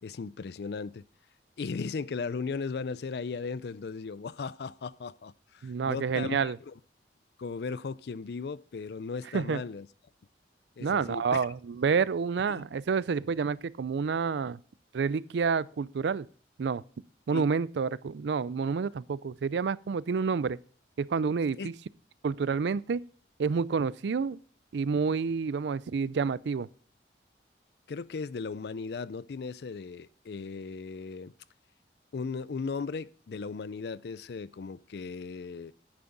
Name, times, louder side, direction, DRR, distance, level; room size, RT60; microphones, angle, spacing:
voice 1, 0.0-1.0 1.6-6.7 7.4-9.9 10.8-11.5 12.5-12.6 17.3-17.5 21.6-21.7 27.9-31.3 32.1-35.7, left 4 dB, 60° left, 0.4 m, -37 dB
voice 2, 5.6-6.6 9.3-9.6 10.8-14.6 14.9-16.3 16.6-16.8 17.3-20.6 21.0-21.7 22.2-23.0 23.4-24.4 24.7-26.7, right 5 dB, 75° right, 0.4 m, -29 dB
9.9 x 9.4 x 3.9 m
head